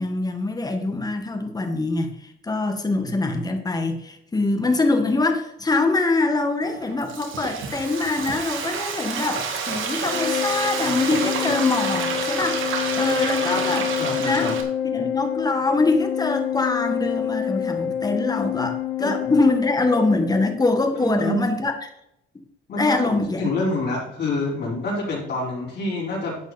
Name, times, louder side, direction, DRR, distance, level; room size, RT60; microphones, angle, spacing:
voice 1, 0.0-13.9 14.2-14.5 14.9-21.9 22.8-23.4, left 2 dB, 20° left, 5 dB, 1.8 m, -24 dB
Frying (food), 6.7-14.6, right 5 dB, 75° right, 2.2 m, -29 dB
Organ, 10.0-20.8, left 9 dB, 70° left, 1.2 m, -27 dB
voice 2, 14.0-14.5 19.0-19.3 21.0-21.5 22.7-26.4, left 2 dB, 45° left, -9 dB, 4.8 m, -27 dB
11.5 x 7.9 x 4.3 m, 0.78 s
cardioid pair, 130°, 21 cm